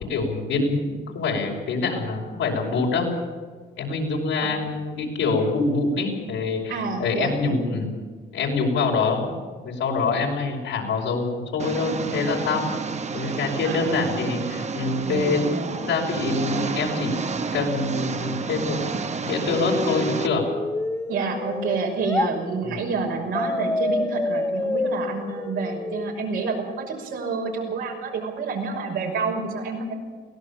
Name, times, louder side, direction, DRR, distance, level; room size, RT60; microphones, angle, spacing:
voice 1, 0.1-3.1 3.8-7.9 8.3-9.4 9.6-12.7 13.1-15.4 15.8-17.1 17.5-20.4 22.6-22.8, left 3 dB, 85° left, -1 dB, 5.7 m, -25 dB
voice 2, 6.7-7.4 13.6-14.3 15.1-15.9 21.1-29.9, right 4 dB, 90° right, -1 dB, 5.9 m, -28 dB
Engine, 11.6-20.3, right 5 dB, 35° right, 1.1 m, -30 dB
sound 1, 19.5-22.3 23.3-26.3, left 2 dB, 10° left, 0.7 m, -28 dB
23.0 x 17.0 x 7.3 m, 1.5 s
cardioid pair, 90°, 20 cm